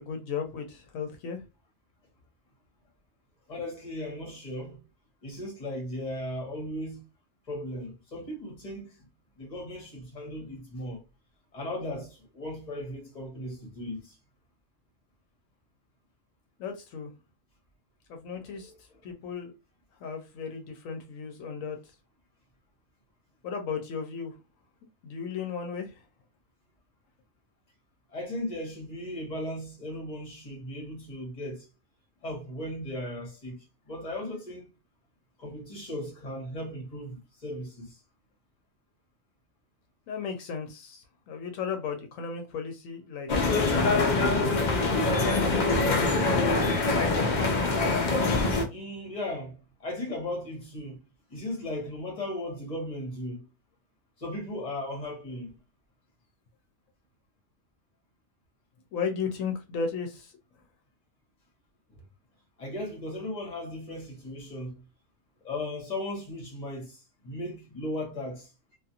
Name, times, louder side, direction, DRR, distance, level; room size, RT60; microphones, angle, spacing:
voice 1, 0.0-1.4 16.6-17.1 18.1-18.7 19.0-19.5 20.0-21.8 23.4-24.3 25.0-26.0 40.1-43.3 43.7-44.8 58.9-60.3, left 6 dB, 80° left, 0.9 m, -35 dB
voice 2, 3.5-4.8 5.2-7.0 7.5-9.1 9.4-11.0 11.5-14.2 18.3-19.0 28.1-31.7 32.2-34.6 35.4-38.0 48.7-51.0 51.3-53.5 54.2-55.5 62.6-64.8 65.4-68.8, left 1 dB, 35° left, 1.1 m, -37 dB
sound 1, 43.3-48.7, left 3 dB, 55° left, 0.5 m, -24 dB
2.5 x 2.4 x 2.7 m
omnidirectional pair, 1.4 m